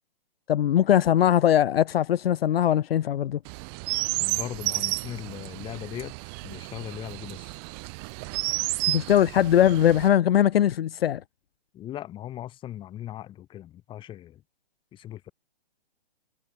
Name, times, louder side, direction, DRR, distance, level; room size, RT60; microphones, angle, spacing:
voice 1, 0.5-3.4 8.9-11.2, left 11 dB, 75° left, 0.5 m, -21 dB
Chirp tweet, 3.4-10.1, right 35 dB, 25° right, 2.0 m, -32 dB
voice 2, 4.1-6.1 6.4-7.6 11.7-14.4 14.9-15.3, left 12 dB, 15° left, 6.8 m, -39 dB
hypercardioid pair, 150°, 30 cm